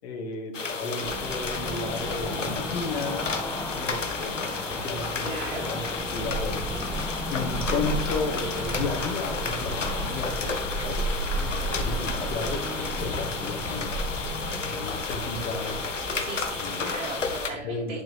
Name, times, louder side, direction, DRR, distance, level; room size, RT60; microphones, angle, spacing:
voice 1, 0.0-3.2 3.7-5.8 6.1-6.6 7.3-11.1 11.7-13.9 14.6-15.8 16.6-17.0 17.6-18.0, left 3 dB, 60° left, 2 dB, 2.0 m, -33 dB
sound 1, 0.5-17.5, left 4 dB, 85° left, 1.2 m, -32 dB
Cricket / Motor vehicle (road), 1.0-17.4, right 1 dB, 5° left, 1.4 m, -34 dB
voice 2, 5.2-5.7 8.6-8.8 16.2-18.0, right 3 dB, 25° right, -4 dB, 2.1 m, -38 dB
10.5 x 6.0 x 3.4 m, 0.69 s
figure-of-eight pair, 90°, 36 cm